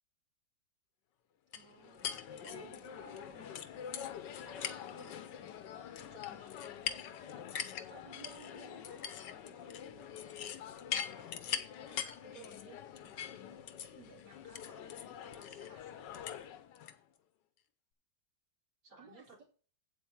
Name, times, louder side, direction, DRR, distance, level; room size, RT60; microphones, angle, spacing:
sound 1, 1.5-17.0, left 9 dB, 80° left, 1.5 m, -43 dB
voice 1, 1.5-2.1 2.4-4.1 5.0-5.1 5.5-5.6 7.9-10.7 19.0-19.4, right 4 dB, 85° right, -1 dB, 2.7 m, -57 dB
voice 2, 4.4-5.6 6.0-7.0 7.3-8.1 10.9-13.6 13.9-16.0 18.8-19.4, right 1 dB, 55° right, -2 dB, 3.9 m, -59 dB
8.3 x 8.1 x 4.5 m, 0.39 s
omnidirectional pair, 1.9 m